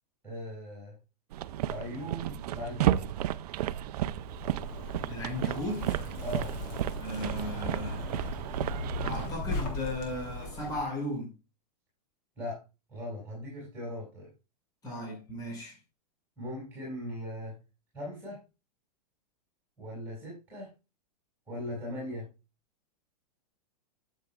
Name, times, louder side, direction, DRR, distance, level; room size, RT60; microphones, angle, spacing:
voice 1, 0.2-1.0 1.7-3.1 6.2-6.5 12.4-12.6 12.9-14.3 16.4-17.6 17.9-18.4 19.8-20.7 21.5-22.3, left 1 dB, 10° right, 6.0 m, -39 dB
sound 1, 1.3-9.3, right 12 dB, 70° right, 0.5 m, -33 dB
Zipper (clothing), 4.2-10.8, left 2 dB, 40° left, 3.1 m, -38 dB
voice 2, 5.1-6.0 7.0-8.1 9.0-11.3 14.8-15.8, left 1 dB, 15° left, 4.8 m, -36 dB
12.5 x 7.4 x 2.3 m
hypercardioid pair, 135°, 21 cm